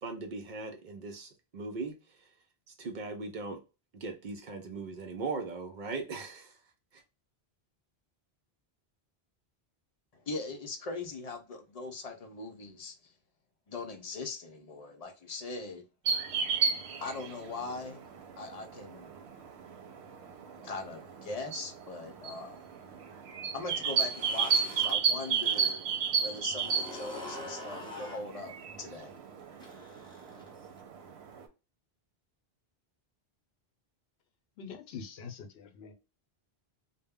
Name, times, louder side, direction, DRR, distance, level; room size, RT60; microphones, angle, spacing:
voice 1, 0.0-1.9 2.7-3.6 3.9-6.6, right 3 dB, 60° right, 0.6 m, -39 dB
voice 2, 10.2-13.1 13.7-15.8 17.0-18.0 18.4-19.1 20.6-22.6 23.5-25.8 26.2-29.1, left 3 dB, 45° left, 0.5 m, -40 dB
sound 1, 16.1-31.4, right 6 dB, 85° right, 0.8 m, -34 dB
sound 2, 23.8-25.7 26.0-30.8, left 1 dB, 5° left, 0.7 m, -45 dB
voice 3, 34.6-35.9, left 6 dB, 80° left, 0.8 m, -44 dB
2.1 x 2.1 x 3.4 m
omnidirectional pair, 1.1 m